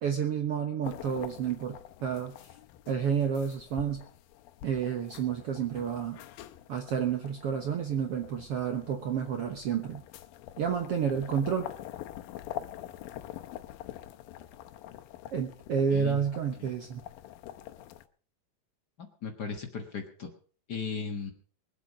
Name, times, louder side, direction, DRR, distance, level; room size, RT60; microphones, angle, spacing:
voice 1, 0.0-2.3 2.9-4.0 4.6-6.2 6.7-10.0 10.6-11.7 15.3-17.0, right 7 dB, 65° right, 5 dB, 1.5 m, -30 dB
sound 1, 0.8-18.1, left 13 dB, 85° left, 2.6 m, -46 dB
voice 2, 15.9-16.2 16.6-16.7 19.0-20.3 20.7-21.3, left 5 dB, 55° left, 4 dB, 1.1 m, -37 dB
22.0 x 8.2 x 5.1 m, 0.42 s
omnidirectional pair, 4.0 m